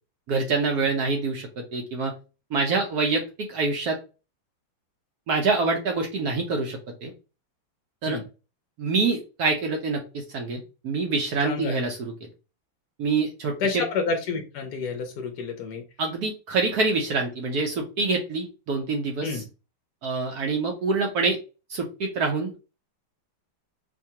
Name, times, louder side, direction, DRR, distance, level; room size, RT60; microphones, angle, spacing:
voice 1, 0.3-2.1 2.5-4.0 5.3-7.1 8.0-8.2 8.8-12.1 13.0-13.8 16.0-19.4 20.0-21.4 21.7-22.5, right 3 dB, 65° right, 2 dB, 1.0 m, -26 dB
voice 2, 11.4-11.7 13.6-15.8 19.2-19.4, left 5 dB, 70° left, 4 dB, 1.0 m, -29 dB
4.7 x 2.2 x 2.8 m, 0.31 s
omnidirectional pair, 2.2 m